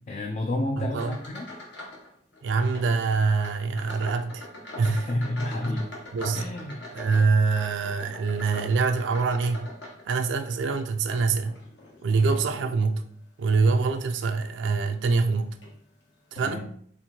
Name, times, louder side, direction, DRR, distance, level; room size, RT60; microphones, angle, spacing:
voice 1, 0.1-1.5 4.8-5.9 6.3-6.8 16.4-16.6, left 1 dB, 35° left, 0.3 m, -30 dB
voice 2, 0.8-1.2 2.4-4.5 4.8-5.1 6.1-6.4 6.9-9.7 10.1-11.5 12.0-13.0 13.4-15.6 16.3-16.7, right 4 dB, 70° right, 0.3 m, -25 dB
sound 1, 0.9-2.1 2.3-2.9 3.4-10.5 11.0-12.8 13.4-13.7 14.2-14.3 15.2-15.3 15.6-15.8, left 1 dB, 65° left, 1.1 m, -42 dB
4.3 x 2.5 x 2.8 m
head